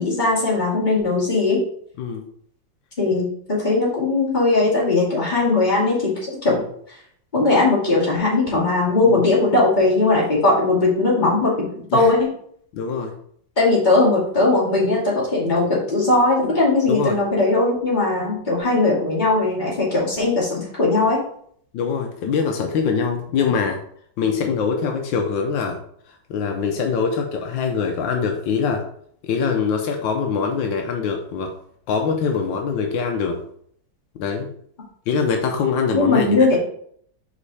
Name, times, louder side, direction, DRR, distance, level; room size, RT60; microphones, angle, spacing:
voice 1, 0.0-1.6 3.0-6.6 7.3-12.3 13.6-21.2 35.9-36.6, left 2 dB, 25° left, -7 dB, 2.6 m, -19 dB
voice 2, 12.7-13.2 16.9-17.2 21.7-23.8 24.2-25.8 26.1-28.8 29.2-31.5 31.9-33.4 34.2-34.5 35.1-36.5, left 5 dB, 80° left, 3 dB, 1.5 m, -23 dB
5.2 x 5.0 x 4.2 m, 0.65 s
omnidirectional pair, 2.0 m